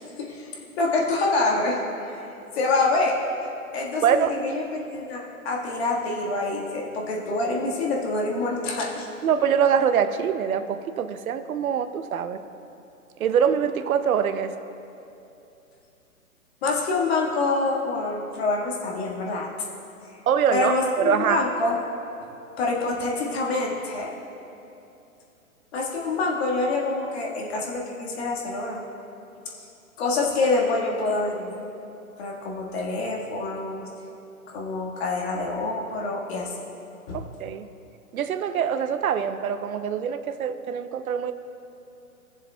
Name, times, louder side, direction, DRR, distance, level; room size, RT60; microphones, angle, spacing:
voice 1, 0.2-0.5 0.8-1.8 2.6-3.2 3.7-9.1 16.6-19.5 20.1-20.2 20.5-21.8 22.6-24.1 25.7-28.8 30.0-31.5 32.2-33.9 34.5-36.5 37.1-37.2, left 3 dB, 45° left, -2 dB, 1.7 m, -26 dB
voice 2, 4.0-4.3 9.2-12.4 13.2-14.5 20.3-21.4 37.1-37.7 38.1-41.3, right 8 dB, 70° right, 10 dB, 0.6 m, -24 dB
18.0 x 7.1 x 2.2 m, 2.8 s
hypercardioid pair, 145°, 44 cm